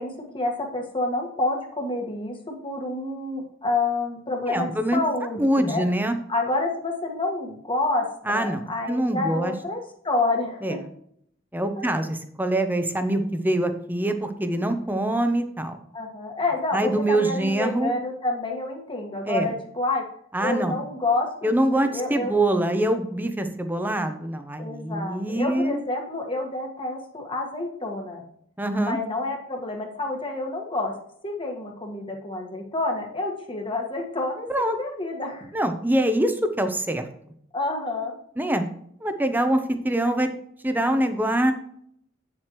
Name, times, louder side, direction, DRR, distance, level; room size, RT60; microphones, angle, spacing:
voice 1, 0.0-5.8 6.3-9.8 10.0-10.8 11.8-11.9 15.9-20.0 20.4-22.3 24.6-28.2 28.8-30.9 31.2-35.5 37.5-38.2, left 2 dB, 25° left, 1 dB, 1.5 m, -28 dB
voice 2, 4.5-5.0 5.4-6.2 8.2-8.6 8.9-9.5 10.6-10.8 11.5-15.8 16.7-17.9 19.3-19.5 20.3-20.8 21.4-25.8 28.6-29.0 34.5-34.8 35.5-37.1 38.4-38.6 39.0-40.3 40.6-41.5, right 1 dB, 10° right, 8 dB, 0.8 m, -24 dB
8.5 x 7.6 x 3.1 m, 0.68 s
head